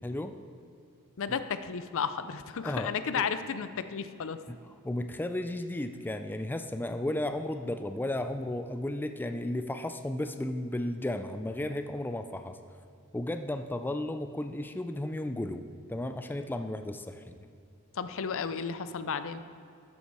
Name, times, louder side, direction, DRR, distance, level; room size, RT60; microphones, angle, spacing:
voice 1, 0.0-0.3 1.3-1.4 2.6-3.2 4.5-4.6 4.8-12.6 13.1-17.4, left 1 dB, 10° left, 7 dB, 0.3 m, -34 dB
voice 2, 1.2-4.4 17.9-19.4, left 6 dB, 65° left, 11 dB, 0.5 m, -33 dB
13.0 x 6.9 x 4.7 m, 2.5 s
head